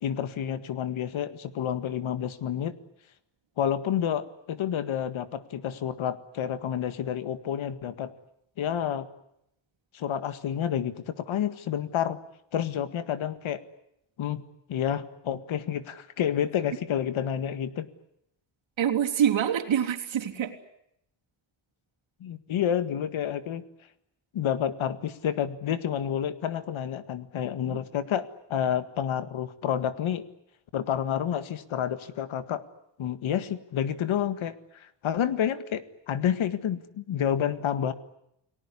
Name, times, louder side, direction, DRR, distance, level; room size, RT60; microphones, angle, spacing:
voice 1, 0.0-2.7 3.6-8.1 8.6-9.1 9.9-12.2 12.5-13.6 14.2-17.9 22.2-23.6 24.3-30.3 30.7-32.6 33.0-37.9, left 9 dB, 80° left, 12 dB, 1.9 m, -29 dB
voice 2, 18.8-20.6 27.7-27.8, right 9 dB, 70° right, 3 dB, 3.5 m, -26 dB
29.5 x 19.0 x 9.9 m, 0.79 s
cardioid pair, 115°, 47 cm